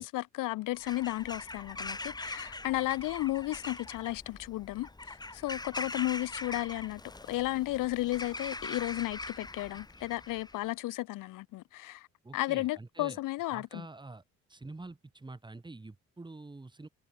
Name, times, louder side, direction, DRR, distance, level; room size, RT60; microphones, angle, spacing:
voice 1, 0.0-7.0 7.3-12.1 12.3-13.8, left 18 dB, 90° left, 2.3 m, -34 dB
Bird vocalization bird call bird song / Crow, 0.7-10.6, left 2 dB, 15° left, 2.6 m, -42 dB
voice 2, 12.2-13.2 13.5-14.2 14.5-16.9, right 2 dB, 15° right, 6.1 m, -47 dB
cardioid pair, 120°, 31 cm